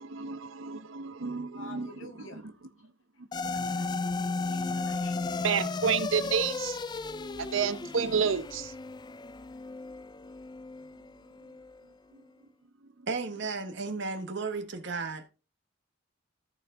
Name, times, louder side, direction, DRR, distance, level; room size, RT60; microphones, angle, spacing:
voice 1, 0.0-2.4 5.4-6.8 7.4-8.7, right 6 dB, 90° right, 0.8 m, -30 dB
voice 2, 1.5-2.4 3.7-3.9 4.2-5.3, left 3 dB, 90° left, 1.7 m, -49 dB
sound 1, 3.3-11.8, left 3 dB, 20° left, 0.4 m, -35 dB
voice 3, 13.1-15.3, right 4 dB, 65° right, 1.2 m, -34 dB
14.0 x 4.7 x 3.6 m
head